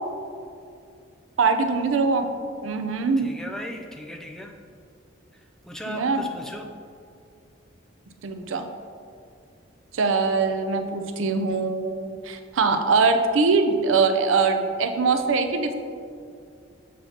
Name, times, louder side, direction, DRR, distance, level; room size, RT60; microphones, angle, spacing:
voice 1, 1.4-2.3 2.6-3.3 5.9-6.2 8.2-8.7 9.9-15.7, right 4 dB, 85° right, 6 dB, 0.5 m, -22 dB
voice 2, 3.2-4.5 5.7-6.7, equal, ahead, 2 dB, 0.4 m, -37 dB
7.5 x 5.5 x 2.8 m, 2.4 s
head